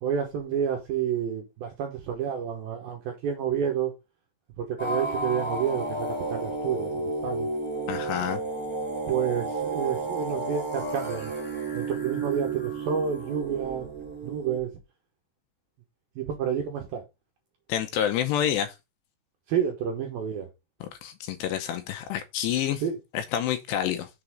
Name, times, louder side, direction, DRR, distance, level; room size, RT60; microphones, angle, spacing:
voice 1, 0.0-3.9 4.6-7.5 9.1-11.3 11.7-13.9 14.2-14.7 16.2-17.0 19.5-20.5 22.8-23.0, right 8 dB, 70° right, 2.5 m, -29 dB
sound 1, 4.8-14.6, right 2 dB, 5° left, 1.1 m, -32 dB
voice 2, 7.9-8.4 17.7-18.7 20.8-22.8 23.1-24.1, left 10 dB, 80° left, 2.7 m, -28 dB
7.0 x 4.0 x 6.2 m
omnidirectional pair, 5.3 m